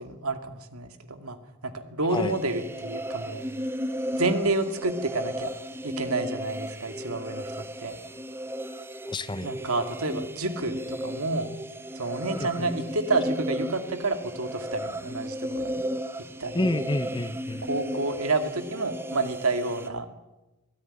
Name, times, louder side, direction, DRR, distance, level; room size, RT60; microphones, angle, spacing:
voice 1, 0.0-1.4 1.6-3.5 4.2-5.5 5.8-7.5 7.8-8.0 9.4-11.5 11.9-15.8 16.4-16.9 17.6-20.1, right 2 dB, 80° right, 8 dB, 2.3 m, -29 dB
sound 1, 2.1-19.9, equal, 10° right, 1.0 m, -35 dB
voice 2, 9.1-9.5 12.4-12.7 16.5-17.7, left 1 dB, 20° left, 13 dB, 0.8 m, -29 dB
23.5 x 17.0 x 10.0 m, 1.1 s
head